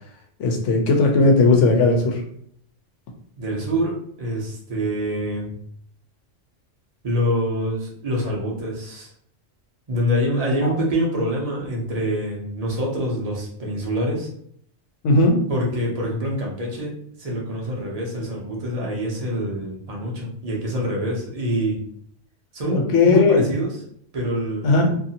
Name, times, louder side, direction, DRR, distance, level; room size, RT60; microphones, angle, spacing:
voice 1, 0.4-2.2 10.6-10.7 15.0-15.4 22.7-23.4 24.6-24.9, left 3 dB, 80° left, 2 dB, 1.0 m, -17 dB
voice 2, 3.4-5.5 7.0-9.1 9.9-14.3 15.5-21.8 22.5-23.8 24.1-24.7, equal, 35° right, -2 dB, 0.7 m, -25 dB
2.7 x 2.6 x 2.7 m, 0.65 s
omnidirectional pair, 1.3 m